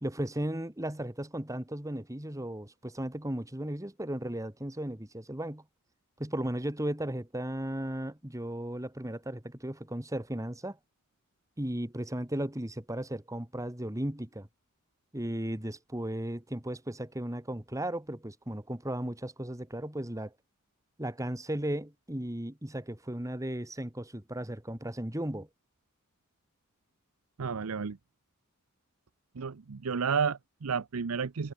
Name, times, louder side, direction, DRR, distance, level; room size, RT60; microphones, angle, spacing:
voice 1, 0.0-5.6 6.2-10.8 11.6-14.5 15.1-20.3 21.0-25.5, right 1 dB, 15° right, 1.9 m, -35 dB
voice 2, 27.4-28.0 29.4-31.5, right 6 dB, 80° right, 0.7 m, -31 dB
head